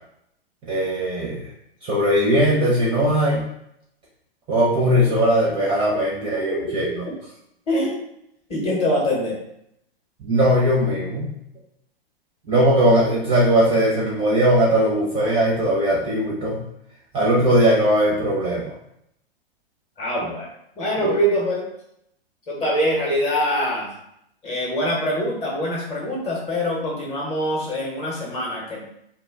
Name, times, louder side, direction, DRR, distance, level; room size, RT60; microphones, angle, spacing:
voice 1, 0.7-1.4 1.8-3.4 4.5-6.8 10.2-11.3 12.5-16.6 17.1-18.6 21.0-21.2, equal, 15° right, -6 dB, 0.5 m, -19 dB
voice 2, 7.7-8.0 8.5-9.4 20.0-20.5 20.8-21.7 22.5-23.9 24.4-28.8, equal, 20° left, -3 dB, 0.8 m, -24 dB
2.1 x 2.1 x 3.3 m, 0.76 s
hypercardioid pair, 120°, 31 cm